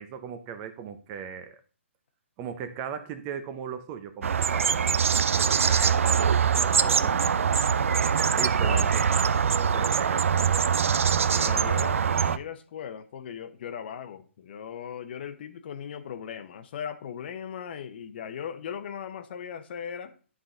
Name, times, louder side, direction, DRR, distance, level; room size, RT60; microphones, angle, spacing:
voice 1, 0.0-1.6 2.4-7.3 8.3-10.6, right 7 dB, 25° right, 0.7 m, -38 dB
sound 1, 4.2-12.4, right 7 dB, 70° right, 0.4 m, -23 dB
voice 2, 11.3-20.1, left 8 dB, 50° left, 0.9 m, -38 dB
11.0 x 3.8 x 3.8 m
hypercardioid pair, 145°, 7 cm